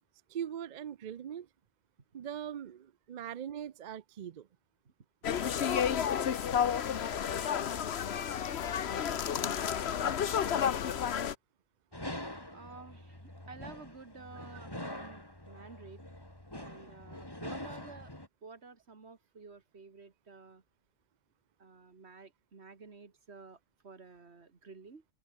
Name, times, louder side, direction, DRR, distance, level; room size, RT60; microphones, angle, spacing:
voice 1, 0.3-1.5 2.1-4.5, right 9 dB, 50° right, 0.6 m, -41 dB
sound 1, 5.2-11.3, left 8 dB, 75° left, 1.2 m, -31 dB
sound 2, 11.9-18.3, left 1 dB, 20° left, 4.2 m, -44 dB
voice 2, 12.5-16.0 16.6-18.1 18.4-20.6 21.6-25.0, right 4 dB, 75° right, 2.3 m, -52 dB
open air
omnidirectional pair, 1.1 m